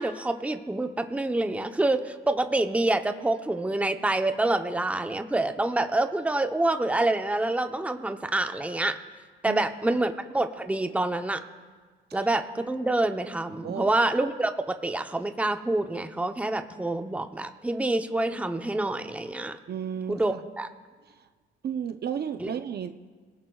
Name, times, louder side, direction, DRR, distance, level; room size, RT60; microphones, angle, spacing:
voice 1, 0.0-9.0 9.4-11.4 12.1-19.6 20.1-20.7 22.4-22.5, right 2 dB, 5° right, 7 dB, 0.8 m, -27 dB
voice 2, 19.7-20.2 21.6-23.1, right 8 dB, 55° right, 8 dB, 0.7 m, -33 dB
25.0 x 17.0 x 2.4 m, 1.5 s
cardioid pair, 90°, 20 cm